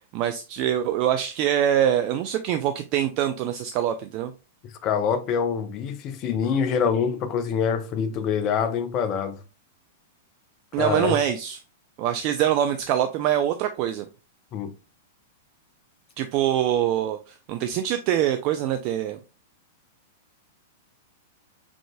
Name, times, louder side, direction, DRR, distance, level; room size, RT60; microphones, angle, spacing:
voice 1, 0.1-4.3 10.7-11.6 12.0-14.1 16.2-17.2 17.5-19.2, right 10 dB, 40° right, 0.3 m, -24 dB
voice 2, 4.8-9.4 10.8-11.2 14.5-14.7, left 7 dB, 35° left, 0.6 m, -25 dB
4.8 x 3.7 x 2.3 m
figure-of-eight pair, 100°, 0 cm